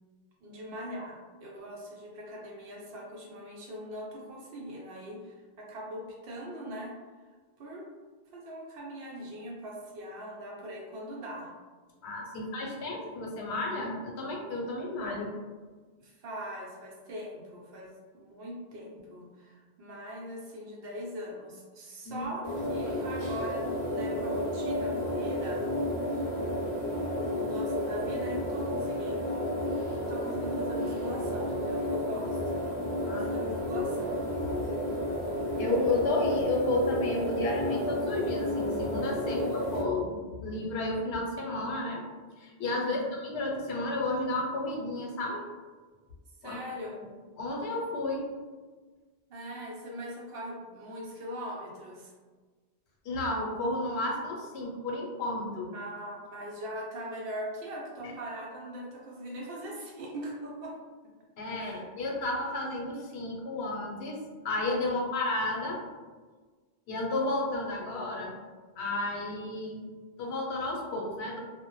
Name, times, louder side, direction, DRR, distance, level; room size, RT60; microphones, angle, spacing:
voice 1, 0.4-7.0 7.6-7.9 8.3-11.5 12.3-12.8 16.0-25.6 27.1-29.5 30.0-32.6 33.1-34.2 39.3-39.5 42.8-43.1 46.4-47.1 49.3-52.1 55.7-60.7 61.6-61.8 64.9-65.1, equal, 70° right, -2 dB, 0.8 m, -41 dB
voice 2, 12.0-15.3 22.0-22.2 33.0-33.3 33.7-33.8 35.6-42.0 42.4-45.4 46.4-46.6 47.4-48.3 53.0-55.7 58.0-58.1 61.4-64.2 64.4-65.8 66.9-68.3 68.8-69.8 70.2-71.4, left 2 dB, 80° left, -1 dB, 0.8 m, -32 dB
sound 1, 22.4-39.8, equal, 25° right, 0.7 m, -32 dB
2.1 x 2.0 x 2.9 m, 1.4 s
omnidirectional pair, 1.1 m